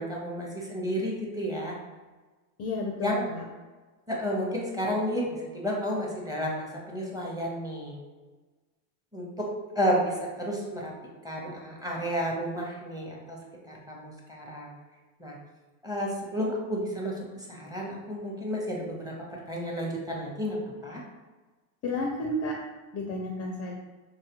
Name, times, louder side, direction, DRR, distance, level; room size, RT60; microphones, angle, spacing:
voice 1, 0.0-1.7 3.0-3.2 4.1-8.0 9.1-9.5 9.7-10.9 11.2-13.4 13.7-14.7 15.2-15.4 15.8-19.1 19.5-20.6 20.8-21.0, equal, 10° right, -3 dB, 0.7 m, -31 dB
voice 2, 2.6-3.4 21.8-22.5 22.9-23.8, left 1 dB, 35° left, 0 dB, 0.4 m, -31 dB
3.9 x 2.3 x 2.9 m, 1.3 s
supercardioid pair, 120°, 47 cm